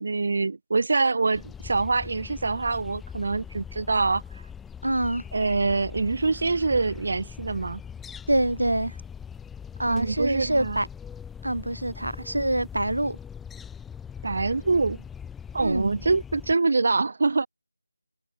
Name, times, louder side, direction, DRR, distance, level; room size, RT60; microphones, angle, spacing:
voice 1, 0.0-4.4 5.3-7.8 9.9-10.8 14.2-15.0 15.5-17.5, right 3 dB, 50° right, 1.2 m, -25 dB
sound 1, 1.3-16.5, left 7 dB, 5° left, 2.2 m, -41 dB
voice 2, 4.8-5.2 8.3-9.0 9.8-10.9 11.4-13.2 15.6-15.9, right 1 dB, 80° right, 5.0 m, -25 dB
figure-of-eight pair, 165°, 0 cm